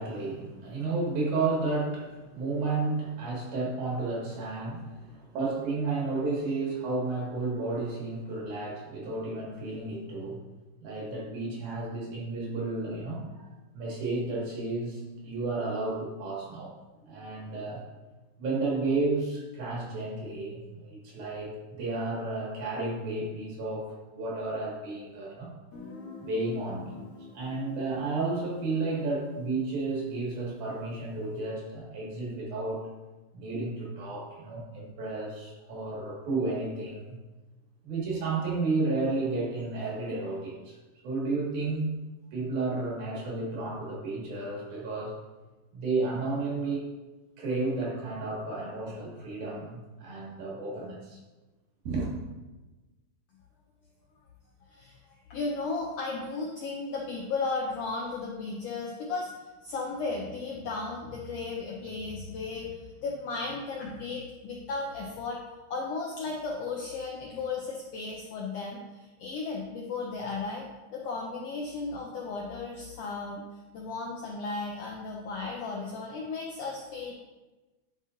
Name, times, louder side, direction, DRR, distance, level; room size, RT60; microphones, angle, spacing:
voice 1, 0.0-10.4 10.8-13.5 13.7-16.7 17.1-17.8 18.4-25.5 26.2-27.0 27.3-32.9 33.3-37.2 37.8-40.8 41.0-42.0 42.3-45.2 45.7-46.9 47.4-51.2 51.8-52.1, right 3 dB, 75° right, -4 dB, 3.1 m, -32 dB
Guitar, 25.7-31.3, left 4 dB, 55° left, 2.3 m, -49 dB
voice 2, 54.7-59.3 59.6-65.4 65.7-73.4 73.7-77.1, left 3 dB, 80° left, -1 dB, 1.4 m, -35 dB
9.9 x 5.4 x 2.5 m, 1.2 s
omnidirectional pair, 3.6 m